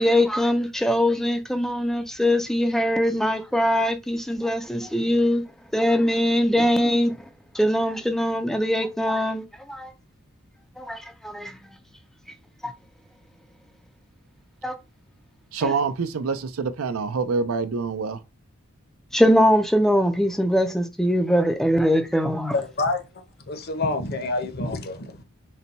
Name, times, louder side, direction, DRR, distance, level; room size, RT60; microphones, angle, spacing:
voice 1, 0.0-5.4 5.7-7.1 7.5-9.4 9.7-9.9 10.8-11.6 12.6-12.7 14.6-14.8 15.6-15.7 19.1-22.5, equal, ahead, 0.4 m, -22 dB
voice 2, 15.5-18.2, right 4 dB, 75° right, 0.5 m, -26 dB
voice 3, 22.5-23.0 23.5-25.2, left 2 dB, 45° left, 0.7 m, -27 dB
4.0 x 2.2 x 4.0 m
head